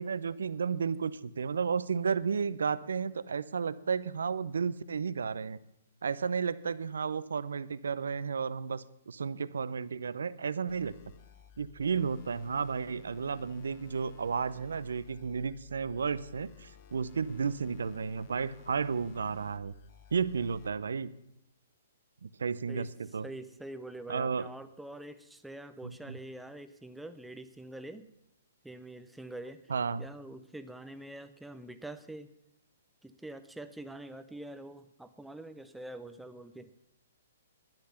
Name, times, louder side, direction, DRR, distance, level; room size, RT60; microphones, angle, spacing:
voice 1, 0.0-5.6 6.0-11.0 11.6-19.7 20.1-21.1 22.2-23.3 24.1-24.5 25.8-26.1 29.7-30.1, right 6 dB, 80° right, 17 dB, 0.6 m, -33 dB
sound 1, 10.7-20.7, left 8 dB, 45° left, 1.3 m, -56 dB
voice 2, 23.2-28.1 28.6-29.7 30.0-32.3 33.0-36.7, right 1 dB, 5° right, 11 dB, 0.7 m, -45 dB
12.0 x 10.0 x 5.7 m, 0.84 s
hypercardioid pair, 135°, 0 cm